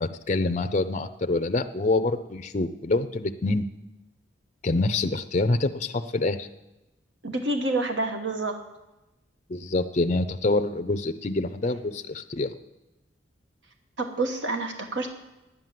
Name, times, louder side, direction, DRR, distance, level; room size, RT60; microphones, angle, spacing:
voice 1, 0.0-3.6 4.6-6.5 9.5-12.5, left 2 dB, 35° left, 7 dB, 0.5 m, -26 dB
voice 2, 7.2-8.6 14.0-15.1, right 2 dB, 70° right, 5 dB, 1.3 m, -28 dB
10.5 x 9.3 x 7.5 m, 0.97 s
head